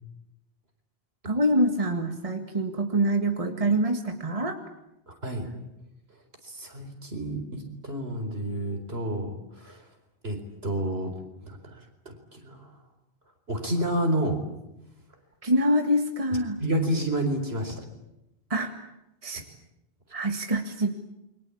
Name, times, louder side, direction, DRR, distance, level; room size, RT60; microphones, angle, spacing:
voice 1, 1.3-4.6 15.4-16.6 18.5-18.9 19.2-19.4 20.1-20.9, right 1 dB, 30° right, 5 dB, 2.0 m, -25 dB
voice 2, 5.1-5.5 6.4-9.8 10.2-11.1 11.4-12.7 13.5-14.4 16.3-17.8, right 1 dB, 70° right, 5 dB, 4.7 m, -30 dB
28.5 x 23.5 x 8.7 m, 0.89 s
omnidirectional pair, 1.1 m